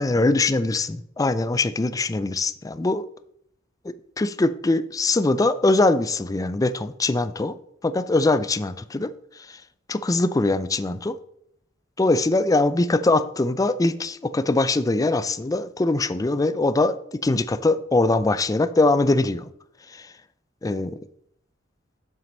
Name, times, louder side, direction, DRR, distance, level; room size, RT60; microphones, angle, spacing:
voice 1, 0.0-3.0 3.8-7.5 7.8-9.1 9.5-9.6 9.9-11.2 12.0-17.0 17.2-19.5 19.9-20.1 20.6-21.0, left 2 dB, 20° left, 0.4 m, -22 dB
7.4 x 6.0 x 5.3 m
head